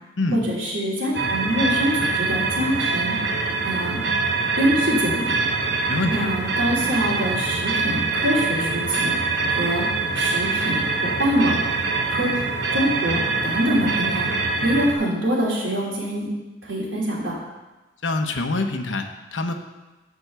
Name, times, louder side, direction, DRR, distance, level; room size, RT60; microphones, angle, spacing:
voice 1, 0.3-3.2 3.6-4.0 4.6-5.4 6.1-9.1 9.5-9.9 10.1-11.6 12.1-14.3 14.6-16.3 16.6-17.4, equal, 85° right, -3 dB, 3.1 m, -24 dB
sound 1, 1.1-14.9, right 3 dB, 60° right, 1.0 m, -24 dB
voice 2, 5.9-6.3 18.0-19.5, left 2 dB, 80° left, 6 dB, 1.0 m, -25 dB
12.0 x 4.7 x 6.8 m, 1.1 s
head